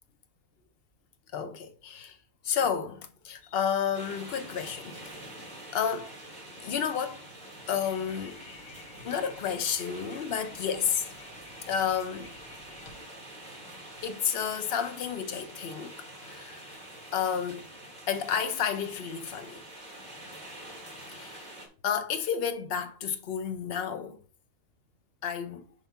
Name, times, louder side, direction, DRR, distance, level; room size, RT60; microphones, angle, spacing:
voice 1, 1.3-2.2 2.4-5.3 5.7-6.1 6.6-7.3 7.7-8.4 9.0-11.1 11.7-12.3 14.0-16.7 17.1-17.7 18.1-19.6 21.1-21.4 21.8-24.2 25.2-25.7, left 7 dB, 50° left, 0.9 m, -31 dB
sound 1, 3.9-21.7, right 1 dB, 30° right, 2.6 m, -46 dB
sound 2, 7.8-13.0, left 4 dB, 85° left, 1.8 m, -52 dB
7.2 x 3.5 x 5.8 m
omnidirectional pair, 1.4 m